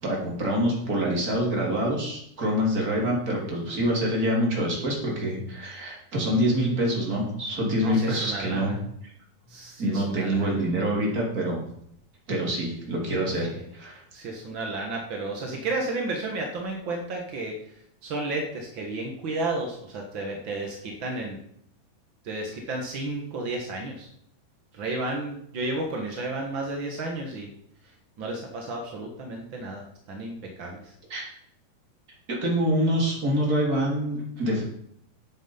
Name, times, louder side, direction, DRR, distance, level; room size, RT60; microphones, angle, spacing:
voice 1, 0.0-8.7 9.8-11.6 12.3-14.0 31.1-31.2 32.3-34.6, equal, 25° right, -2 dB, 3.4 m, -26 dB
voice 2, 7.8-8.7 9.5-10.6 13.4-13.6 14.1-17.6 18.0-21.4 22.2-24.1 24.7-27.5 28.2-30.9, right 2 dB, 55° right, 1 dB, 1.3 m, -32 dB
11.5 x 8.5 x 5.6 m, 0.70 s
omnidirectional pair, 4.6 m